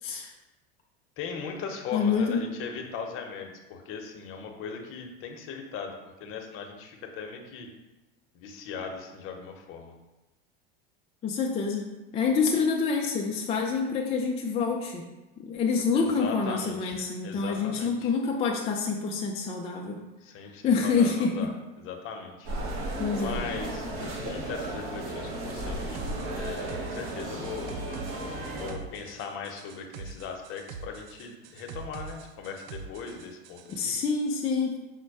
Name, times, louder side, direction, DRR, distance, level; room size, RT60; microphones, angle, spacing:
voice 1, 0.0-0.3 1.9-2.4 11.2-11.9 12.1-15.0 15.4-20.0 20.6-21.3 23.0-23.4 33.7-34.8, left 5 dB, 20° left, 0 dB, 0.4 m, -27 dB
voice 2, 1.2-7.7 8.3-9.9 15.9-18.1 20.2-21.5 21.8-22.5 23.2-26.0 26.3-27.7 28.5-34.0, left 6 dB, 45° left, 3 dB, 0.8 m, -39 dB
sound 1, 22.4-28.7, right 1 dB, 45° right, 1.2 m, -34 dB
sound 2, 25.9-33.8, right 5 dB, 70° right, 0.5 m, -44 dB
5.1 x 2.1 x 4.6 m, 1.1 s
supercardioid pair, 115°, 30 cm